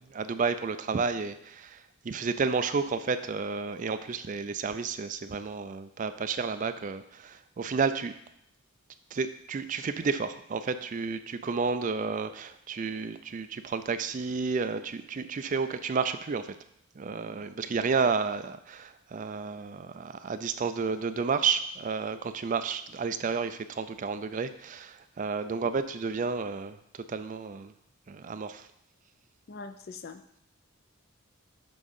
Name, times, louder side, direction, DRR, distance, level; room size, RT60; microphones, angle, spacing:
voice 1, 0.0-8.1 9.1-16.6 17.0-27.7 28.1-28.7, right 5 dB, 35° right, 10 dB, 0.3 m, -31 dB
voice 2, 29.5-30.4, left 4 dB, 45° left, 10 dB, 0.4 m, -43 dB
6.9 x 3.7 x 5.4 m, 0.74 s
head